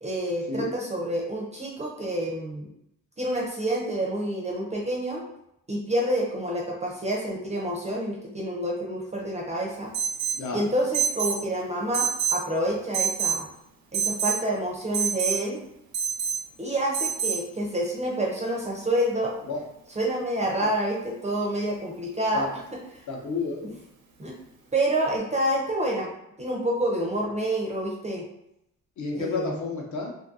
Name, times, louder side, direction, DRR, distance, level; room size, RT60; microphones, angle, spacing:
voice 1, 0.0-2.7 3.2-5.2 5.7-9.9 10.5-13.5 13.9-15.6 16.6-19.3 19.9-23.1 23.6-23.7 24.2-24.3 24.7-26.1 26.4-28.2 29.1-29.7, right 1 dB, 20° right, -2 dB, 0.4 m, -28 dB
Alarm, 9.9-10.4 10.9-11.4 11.9-12.4 12.9-13.4 13.9-14.4 14.9-15.4 15.9-16.4 16.9-17.4, right 7 dB, 85° right, 0.6 m, -26 dB
voice 2, 10.4-10.7 19.5-19.6 22.3-22.5 23.1-23.8 29.0-30.1, left 3 dB, 55° left, 0 dB, 0.7 m, -30 dB
2.6 x 2.4 x 2.6 m, 0.80 s
cardioid pair, 145°, 34 cm